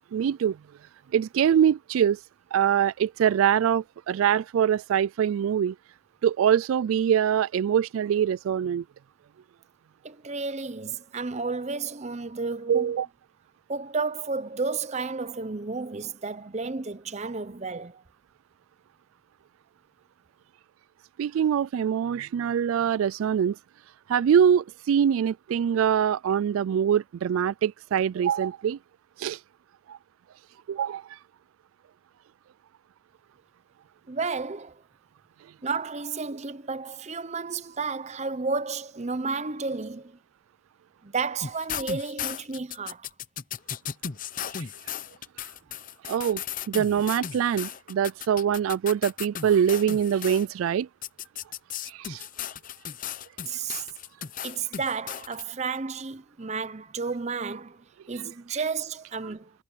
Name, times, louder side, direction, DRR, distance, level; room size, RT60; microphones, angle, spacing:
voice 1, 0.1-0.6 1.1-2.2 2.5-5.7 6.2-8.8 12.7-13.1 21.2-23.6 24.1-28.8 29.2-29.4 29.9-30.0 30.7-31.2 44.6-44.7 46.1-50.9 51.9-52.3, right 8 dB, 85° right, 0.3 m, -24 dB
voice 2, 10.0-12.9 13.7-18.0 34.1-34.8 35.6-40.2 41.0-43.1 53.5-53.9 54.4-59.5, right 4 dB, 35° right, 0.8 m, -32 dB
sound 1, 41.4-50.5 51.0-55.4, left 8 dB, 40° left, 0.7 m, -36 dB
head